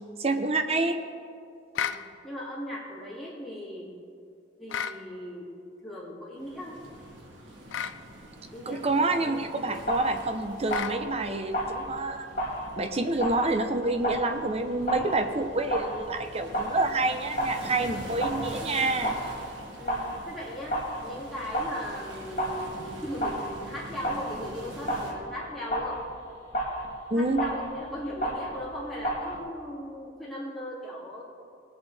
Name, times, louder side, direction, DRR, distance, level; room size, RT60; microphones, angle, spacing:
voice 1, 0.2-1.0 8.7-12.3 12.8-19.2 27.1-27.4, right 2 dB, 35° right, 7 dB, 0.7 m, -28 dB
sound 1, 1.7-2.0 4.7-5.0 7.7-8.0 10.7-11.0, left 8 dB, 75° left, 0.4 m, -31 dB
voice 2, 2.2-3.9 4.6-5.5 5.8-6.8 8.5-9.5 19.8-26.0 27.1-31.2, left 1 dB, ahead, -8 dB, 2.8 m, -38 dB
sound 2, 6.4-25.1, right 1 dB, 75° right, 1.7 m, -45 dB
sound 3, 9.8-29.4, equal, 45° left, 1.9 m, -34 dB
18.5 x 8.1 x 3.5 m, 2.4 s
head